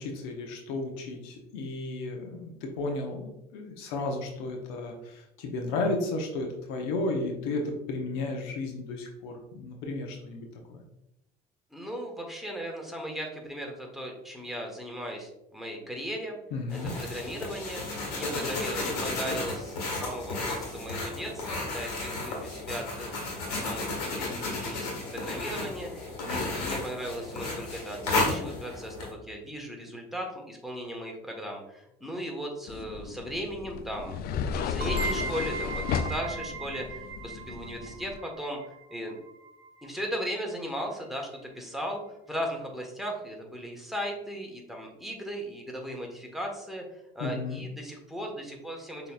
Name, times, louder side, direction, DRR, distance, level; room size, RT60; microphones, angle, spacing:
voice 1, 0.0-10.8 16.5-17.0 18.3-18.6 47.2-47.6, left 2 dB, 75° left, 2 dB, 0.9 m, -33 dB
voice 2, 11.7-16.4 16.7-17.8 18.1-34.2 34.5-38.6 38.9-39.2 39.8-41.3 41.5-49.1, equal, ahead, 0 dB, 1.3 m, -37 dB
Drawing With a Pencil, 16.7-29.1, left 2 dB, 90° left, 1.6 m, -33 dB
sound 1, 32.7-38.2, left 7 dB, 50° left, 0.4 m, -34 dB
sound 2, 34.8-40.2, right 4 dB, 55° right, 0.9 m, -38 dB
6.5 x 3.1 x 2.4 m, 0.85 s
hypercardioid pair, 75°, 19 cm